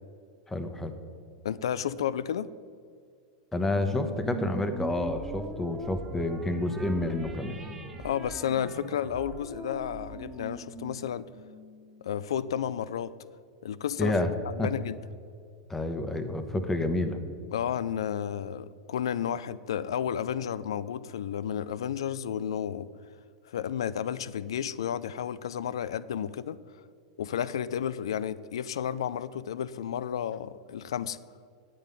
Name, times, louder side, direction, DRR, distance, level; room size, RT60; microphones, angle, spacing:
voice 1, 0.5-0.9 3.5-7.6 14.0-14.3 14.6-14.7 15.7-17.2, left 2 dB, 10° left, 8 dB, 1.0 m, -29 dB
voice 2, 1.4-2.5 8.0-11.3 12.0-13.1 13.6-14.2 14.5-15.0 17.5-22.9 23.5-26.6 27.2-31.2, left 9 dB, 80° left, 17 dB, 0.4 m, -32 dB
sound 1, 3.7-12.5, right 2 dB, 15° right, 1.6 m, -42 dB
9.8 x 7.6 x 5.3 m, 2.3 s
hypercardioid pair, 105°, 3 cm